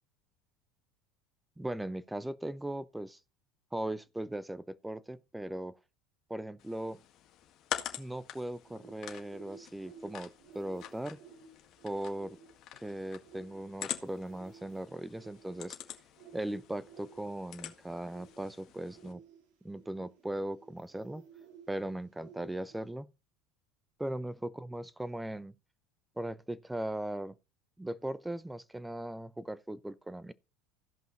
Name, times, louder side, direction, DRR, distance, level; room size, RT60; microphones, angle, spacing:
voice 1, 1.6-3.2 3.7-5.7 6.3-7.0 8.0-11.2 11.8-12.4 12.8-15.8 16.3-19.2 19.6-21.2 21.7-23.1 24.0-25.5 26.2-27.3 27.8-30.3, right 1 dB, 5° right, 0.7 m, -38 dB
sound 1, 6.6-19.1, left 11 dB, 55° left, 1.8 m, -46 dB
sound 2, 8.6-22.9, right 6 dB, 70° right, 3.7 m, -57 dB
15.0 x 5.5 x 4.2 m
supercardioid pair, 105°, 0 cm